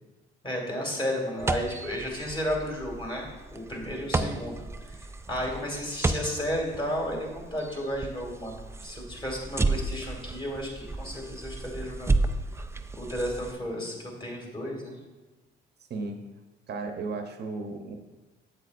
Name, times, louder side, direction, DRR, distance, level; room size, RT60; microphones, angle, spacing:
voice 1, 0.4-4.5 4.9-5.0 5.3-12.2 12.9-13.9 14.2-15.0, equal, 25° left, -1 dB, 2.5 m, -33 dB
sound 1, 1.4-13.5, right 3 dB, 15° right, 0.4 m, -32 dB
voice 2, 16.7-18.0, right 3 dB, 55° right, 5 dB, 0.8 m, -35 dB
8.0 x 7.6 x 2.5 m, 1.2 s
cardioid pair, 90°, 20 cm